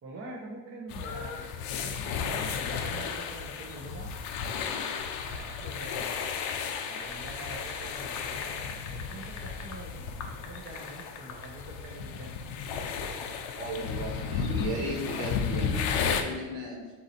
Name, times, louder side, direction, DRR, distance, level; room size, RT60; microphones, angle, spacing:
voice 1, 0.0-4.1 5.2-6.1 6.9-8.6 8.9-12.4, right 2 dB, 30° right, -1 dB, 0.6 m, -45 dB
sound 1, 0.9-16.2, left 6 dB, 85° left, 0.6 m, -34 dB
sound 2, 6.5-9.8 10.2-11.5, left 6 dB, 35° left, 0.5 m, -43 dB
voice 2, 13.5-16.8, equal, 60° right, -2 dB, 1.4 m, -35 dB
4.0 x 2.7 x 4.0 m, 1.3 s
cardioid pair, 115°, 48 cm